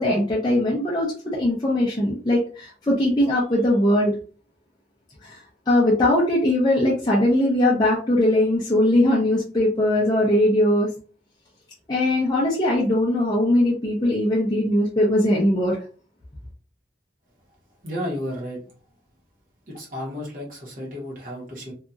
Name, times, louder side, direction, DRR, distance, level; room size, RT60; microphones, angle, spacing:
voice 1, 0.0-4.1 5.2-5.4 5.7-10.9 11.9-15.8, left 1 dB, 25° left, -5 dB, 0.5 m, -20 dB
voice 2, 17.8-18.7 19.7-21.7, equal, 50° right, -3 dB, 1.2 m, -32 dB
2.8 x 2.5 x 2.4 m, 0.39 s
head